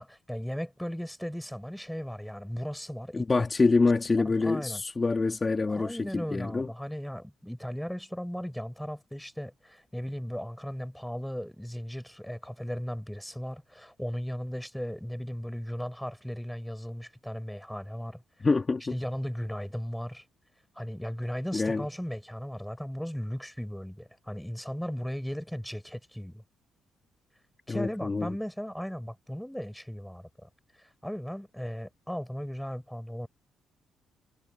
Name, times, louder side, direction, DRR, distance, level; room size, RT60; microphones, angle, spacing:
voice 1, 0.0-3.4 4.2-4.8 5.7-18.2 18.9-20.2 20.8-26.4 27.7-30.5 30.8-33.3, equal, ahead, 6.2 m, -36 dB
voice 2, 3.1-6.7 18.4-18.9 21.5-21.8 27.7-28.3, left 3 dB, 25° left, 2.1 m, -26 dB
cardioid pair, 90°, 0 cm